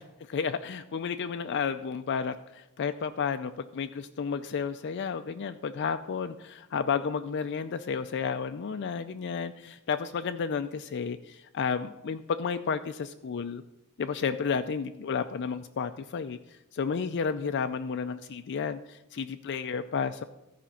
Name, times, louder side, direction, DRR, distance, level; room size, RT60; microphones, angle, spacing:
voice 1, 0.3-13.6 14.0-16.4 16.7-20.2, left 6 dB, 55° left, 9 dB, 0.4 m, -32 dB
13.5 x 5.1 x 5.7 m, 0.92 s
head